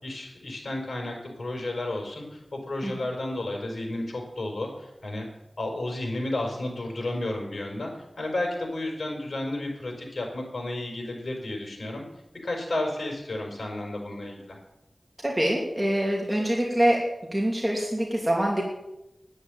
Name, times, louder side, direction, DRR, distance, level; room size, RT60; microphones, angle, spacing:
voice 1, 0.0-5.3 5.6-7.9 8.2-12.0 12.4-14.6, left 1 dB, 75° left, 1 dB, 5.5 m, -32 dB
voice 2, 15.2-17.0 17.3-18.6, right 1 dB, 15° right, -2 dB, 3.0 m, -24 dB
11.5 x 9.8 x 9.1 m, 0.91 s
wide cardioid pair, 45°, 0 cm